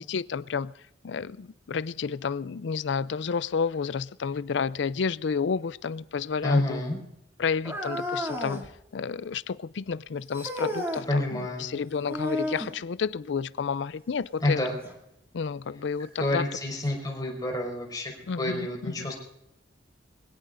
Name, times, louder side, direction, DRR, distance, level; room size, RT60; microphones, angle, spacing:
voice 1, 0.1-0.7 1.0-6.8 7.4-8.7 8.9-14.6 15.3-16.5 18.3-19.1, left 5 dB, 75° left, 0.4 m, -30 dB
voice 2, 6.4-7.0 11.1-11.7 14.4-14.7 16.2-18.1 18.4-19.1, left 1 dB, 20° left, 5.1 m, -28 dB
sound 1, 7.6-8.7 10.3-11.1 12.1-12.8 14.8-14.9 15.8-15.9 16.9-17.0, left 1 dB, 15° right, 2.7 m, -32 dB
24.0 x 17.5 x 2.6 m
head